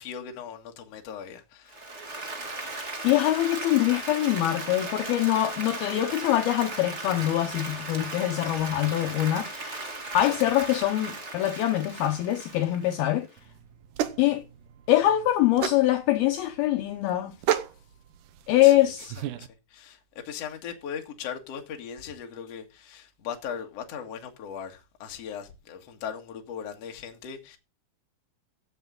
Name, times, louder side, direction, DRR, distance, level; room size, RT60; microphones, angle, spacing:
voice 1, 0.0-2.3 10.3-10.4 18.6-18.9 19.3-27.6, left 7 dB, 50° left, 2.2 m, -39 dB
Applause, 1.7-13.4, right 2 dB, 35° right, 1.1 m, -37 dB
voice 2, 3.0-9.8 10.1-13.3 14.2-14.5 14.9-17.3 18.5-19.1, left 14 dB, 75° left, 2.5 m, -24 dB
sound 1, 13.4-19.5, right 10 dB, 85° right, 1.8 m, -33 dB
15.5 x 7.2 x 3.9 m
omnidirectional pair, 5.0 m